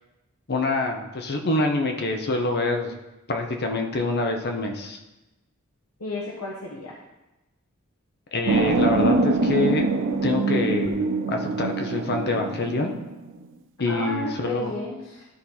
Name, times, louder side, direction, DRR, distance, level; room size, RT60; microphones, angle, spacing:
voice 1, 0.5-2.9 3.3-5.0 8.3-9.9 10.2-11.0 11.3-12.9 13.8-14.7, left 2 dB, 50° left, 3 dB, 0.9 m, -25 dB
voice 2, 6.0-7.0 13.9-15.3, left 2 dB, 80° left, -3 dB, 1.3 m, -33 dB
sound 1, 8.5-13.5, right 3 dB, 60° right, 0.5 m, -24 dB
12.5 x 4.3 x 4.1 m, 0.99 s
head